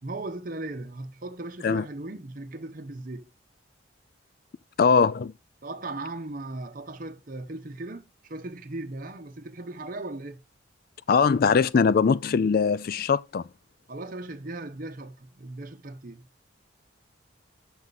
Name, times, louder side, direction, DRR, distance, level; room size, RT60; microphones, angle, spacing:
voice 1, 0.0-3.3 5.6-10.4 13.9-16.2, right 2 dB, 45° right, 0.8 m, -37 dB
voice 2, 4.8-5.3 11.1-13.4, left 5 dB, 45° left, 0.3 m, -21 dB
7.2 x 6.2 x 3.9 m
head